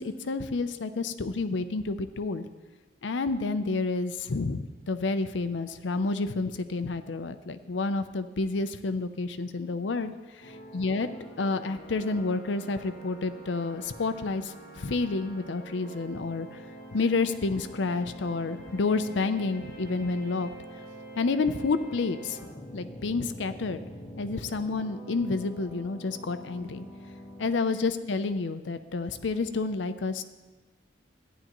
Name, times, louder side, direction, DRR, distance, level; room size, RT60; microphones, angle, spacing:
voice 1, 0.0-2.5 3.0-11.1 11.4-16.6 16.9-20.5 21.2-22.4 22.7-23.8 24.2-26.8 27.4-30.2, left 3 dB, 85° left, 10 dB, 0.6 m, -29 dB
sound 1, 10.4-27.5, right 1 dB, 50° left, 1.3 m, -45 dB
13.0 x 10.0 x 3.0 m, 1.2 s
head